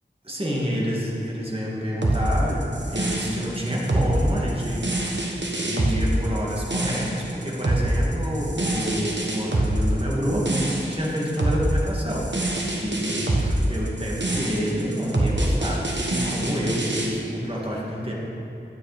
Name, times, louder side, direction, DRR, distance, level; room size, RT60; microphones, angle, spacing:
voice 1, 0.2-5.1 5.6-12.3 12.8-18.1, equal, 30° right, -4 dB, 2.3 m, -28 dB
sound 1, 2.0-17.1, right 1 dB, 70° right, 1.4 m, -25 dB
12.0 x 9.0 x 5.2 m, 2.7 s
wide cardioid pair, 45°, 19 cm